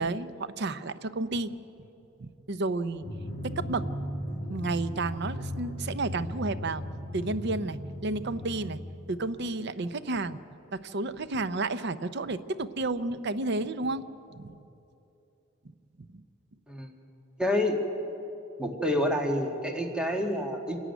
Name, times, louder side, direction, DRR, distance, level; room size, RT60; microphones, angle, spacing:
voice 1, 0.0-1.6 2.2-3.0 3.4-3.9 4.5-6.8 7.1-8.8 9.1-10.4 10.7-14.1 14.3-14.6, right 2 dB, 55° right, 13 dB, 0.7 m, -31 dB
Drum, 3.0-9.5, equal, 35° left, 2.8 m, -37 dB
voice 2, 17.4-17.8 18.6-20.8, left 1 dB, 5° right, 1 dB, 1.8 m, -28 dB
26.5 x 11.0 x 9.3 m, 2.9 s
head